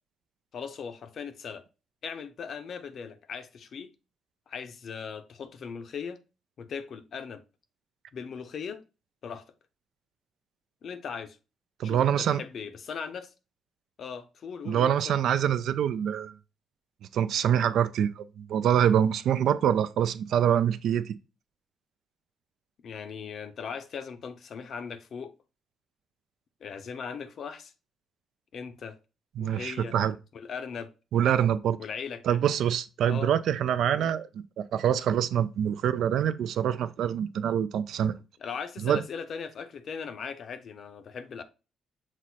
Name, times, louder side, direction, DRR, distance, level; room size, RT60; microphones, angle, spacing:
voice 1, 0.5-1.6 2.0-3.9 4.5-6.2 6.6-7.4 8.1-8.8 9.2-9.4 10.8-11.4 11.8-13.3 14.0-15.1 22.8-25.4 26.6-27.7 28.5-29.0 29.4-29.9 30.3-30.9 31.8-32.4 33.0-33.3 33.9-34.1 38.4-41.4, left 6 dB, 60° left, 0.6 m, -39 dB
voice 2, 11.8-12.4 14.7-16.3 17.1-21.1 29.4-30.2 31.1-31.8 32.2-34.3 34.7-38.1 38.8-39.0, right 9 dB, 75° right, 0.3 m, -25 dB
6.0 x 2.1 x 4.0 m
cardioid pair, 90°, 0 cm